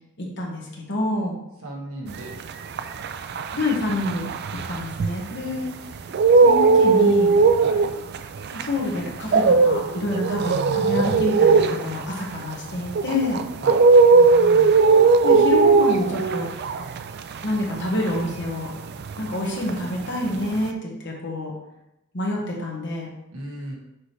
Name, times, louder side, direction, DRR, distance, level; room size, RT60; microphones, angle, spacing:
voice 1, 0.2-1.3 3.5-4.3 4.7-5.7 6.4-7.4 8.5-13.4 15.2-16.5 17.4-18.7 19.2-21.5 22.1-23.1, left 2 dB, 50° left, -1 dB, 1.4 m, -27 dB
voice 2, 1.6-3.1 7.6-7.9 13.6-13.8 23.3-23.8, right 1 dB, 75° right, -2 dB, 1.5 m, -37 dB
sound 1, 2.3-5.6 5.9-19.4 19.6-20.7, right 4 dB, 50° right, 0.3 m, -18 dB
6.2 x 4.7 x 3.3 m, 0.87 s
head